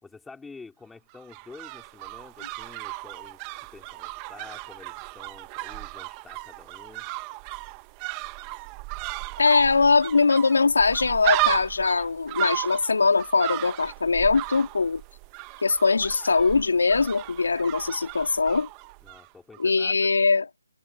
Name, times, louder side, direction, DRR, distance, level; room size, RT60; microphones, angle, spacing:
voice 1, 0.0-3.4 3.7-7.1 19.0-20.1, left 4 dB, 5° left, 4.1 m, -48 dB
sound 1, 1.1-19.3 19.5-19.6, right 23 dB, 15° right, 1.1 m, -35 dB
voice 2, 9.4-15.0 15.6-18.7 19.6-20.4, left 4 dB, 70° left, 3.0 m, -21 dB
hypercardioid pair, 170°, 0 cm